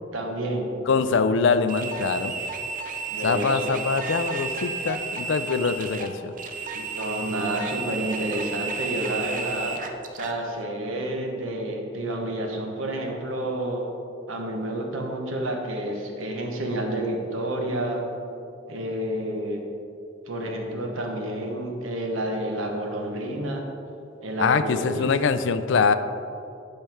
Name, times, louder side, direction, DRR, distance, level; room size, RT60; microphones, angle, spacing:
voice 1, 0.1-0.7 3.1-3.7 6.7-9.8 10.1-13.9 14.3-18.1 18.7-19.6 20.3-23.6 24.2-25.1, right 1 dB, 85° right, 2 dB, 1.1 m, -29 dB
voice 2, 0.9-2.3 3.2-6.3 24.4-25.9, left 5 dB, 65° left, 11 dB, 0.4 m, -23 dB
sound 1, 1.7-10.4, right 4 dB, 40° right, 0.6 m, -32 dB
10.5 x 5.5 x 3.5 m, 2.7 s
head